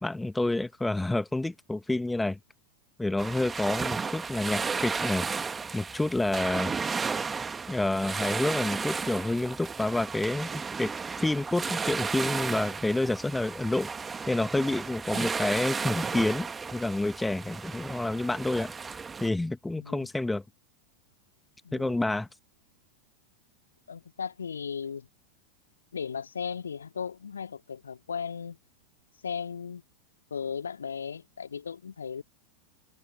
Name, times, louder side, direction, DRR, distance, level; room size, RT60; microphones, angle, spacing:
voice 1, 0.0-2.4 3.0-5.3 5.7-6.7 7.7-10.5 10.8-13.9 14.3-18.7 19.2-20.4 21.7-22.3, left 2 dB, 5° left, 1.1 m, -29 dB
sound 1, 3.2-19.3, right 5 dB, 15° right, 2.3 m, -34 dB
voice 2, 19.8-20.1 21.6-22.0 23.9-25.1 25.9-28.6 29.2-29.8 30.3-32.2, left 6 dB, 70° left, 2.2 m, -36 dB
figure-of-eight pair, 90°, 0 cm